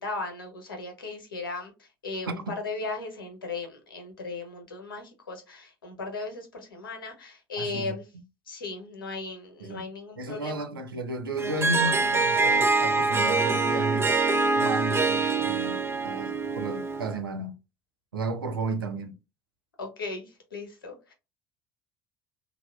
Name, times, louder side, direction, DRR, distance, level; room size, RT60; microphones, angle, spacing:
voice 1, 0.0-8.0 8.5-10.7 19.8-21.1, left 3 dB, 80° left, 0.8 m, -37 dB
voice 2, 7.6-7.9 9.6-9.8 10.2-14.2 14.5-17.6 18.1-19.2, right 2 dB, 90° right, 0.4 m, -33 dB
Harp, 11.4-17.2, right 3 dB, 20° right, 0.5 m, -25 dB
3.3 x 2.2 x 2.3 m
figure-of-eight pair, 60°, 11 cm